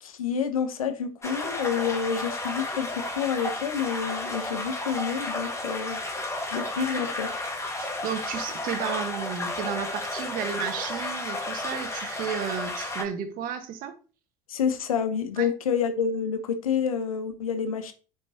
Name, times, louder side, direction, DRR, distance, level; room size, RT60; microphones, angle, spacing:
voice 1, 0.0-6.0 6.5-7.3 14.5-17.9, left 7 dB, 85° left, 1.0 m, -28 dB
sound 1, 1.2-13.0, left 2 dB, 15° left, 1.9 m, -32 dB
voice 2, 6.7-7.1 7.8-13.9 15.3-15.5, right 8 dB, 55° right, 1.4 m, -33 dB
9.8 x 5.1 x 2.9 m
hypercardioid pair, 70°, 17 cm